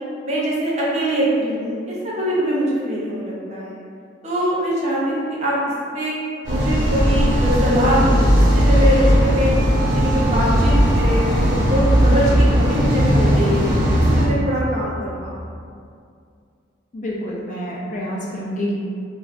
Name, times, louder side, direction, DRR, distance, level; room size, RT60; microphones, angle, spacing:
voice 1, 0.2-3.8 4.2-5.5 5.9-6.1 6.5-9.5 9.8-13.7 14.0-15.4, equal, 35° right, -6 dB, 0.6 m, -23 dB
sound 1, 6.4-14.3, equal, 75° right, 1.0 m, -17 dB
voice 2, 16.9-18.7, equal, 40° left, -4 dB, 0.4 m, -27 dB
2.5 x 2.5 x 3.2 m, 2.3 s
head